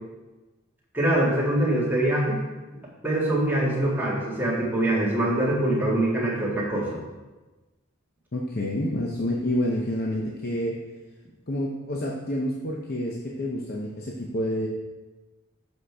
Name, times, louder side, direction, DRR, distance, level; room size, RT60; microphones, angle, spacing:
voice 1, 0.9-2.4 3.0-7.0, right 1 dB, 10° right, -6 dB, 1.7 m, -24 dB
voice 2, 8.3-10.8 11.5-14.7, left 1 dB, 45° left, -2 dB, 0.7 m, -28 dB
7.6 x 6.4 x 3.4 m, 1.2 s
head